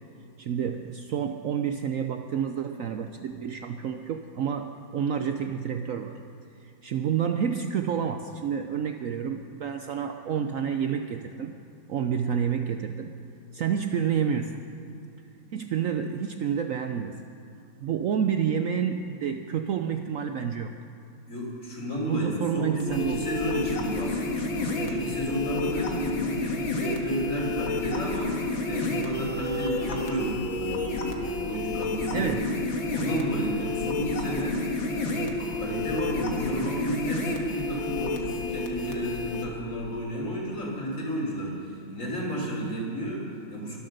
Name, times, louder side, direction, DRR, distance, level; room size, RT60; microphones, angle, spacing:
voice 1, 0.4-6.2 6.6-11.5 11.9-13.1 13.5-14.6 15.5-17.1 17.8-20.7 22.0-23.4 32.1-32.5, right 8 dB, 90° right, 6 dB, 0.7 m, -29 dB
voice 2, 21.3-32.5 32.9-43.8, equal, 40° left, -2 dB, 3.7 m, -32 dB
sound 1, 22.8-39.4, left 3 dB, 80° left, 2.3 m, -30 dB
23.0 x 7.8 x 6.6 m, 2.6 s
omnidirectional pair, 2.1 m